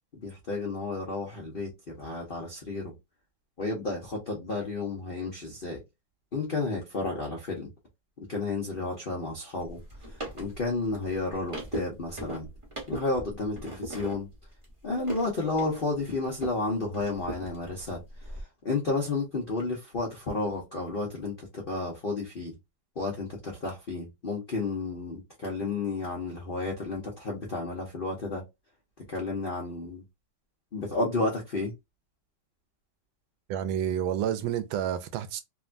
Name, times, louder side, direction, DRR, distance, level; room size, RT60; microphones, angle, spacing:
voice 1, 0.2-2.9 3.6-5.8 6.3-7.7 8.3-9.8 10.1-12.5 12.9-14.3 14.8-22.5 23.0-28.4 29.1-30.0 30.7-31.7, left 3 dB, 75° left, 0.5 m, -32 dB
sound 1, 9.6-16.6 16.9-18.4, right 1 dB, 20° right, 0.8 m, -40 dB
voice 2, 33.5-35.4, right 10 dB, 80° right, 1.4 m, -29 dB
3.5 x 2.2 x 2.4 m
omnidirectional pair, 2.2 m